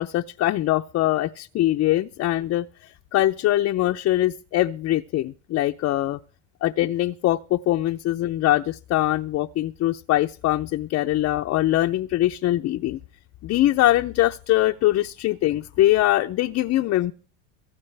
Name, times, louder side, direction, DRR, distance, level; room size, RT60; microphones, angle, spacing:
voice 1, 0.0-6.2 6.6-13.0 13.4-17.1, left 14 dB, 35° left, 0.5 m, -22 dB
24.0 x 9.5 x 3.3 m
supercardioid pair, 110°, 44 cm